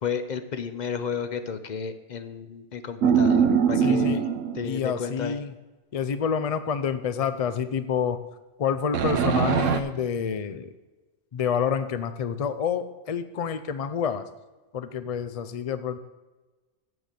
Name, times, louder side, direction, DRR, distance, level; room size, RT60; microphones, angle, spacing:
voice 1, 0.0-4.2 4.6-5.4, left 6 dB, 45° left, 10 dB, 0.7 m, -32 dB
sound 1, 3.0-4.8 8.9-9.8, right 7 dB, 90° right, 1.1 m, -22 dB
voice 2, 3.8-4.2 4.6-5.5 5.9-8.2 8.6-10.7 11.3-14.2 14.7-16.0, left 7 dB, 65° left, 11 dB, 0.3 m, -28 dB
7.9 x 7.5 x 6.7 m, 1.2 s
omnidirectional pair, 1.3 m